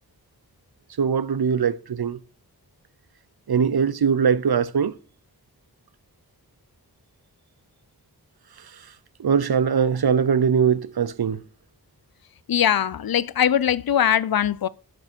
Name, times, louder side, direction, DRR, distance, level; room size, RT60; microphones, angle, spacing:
voice 1, 1.0-2.2 3.5-4.9 8.7-8.8 9.2-11.4, right 6 dB, 80° right, 0.6 m, -21 dB
voice 2, 12.5-14.7, left 9 dB, 70° left, 0.5 m, -21 dB
10.5 x 6.2 x 4.4 m
wide cardioid pair, 50°, 38 cm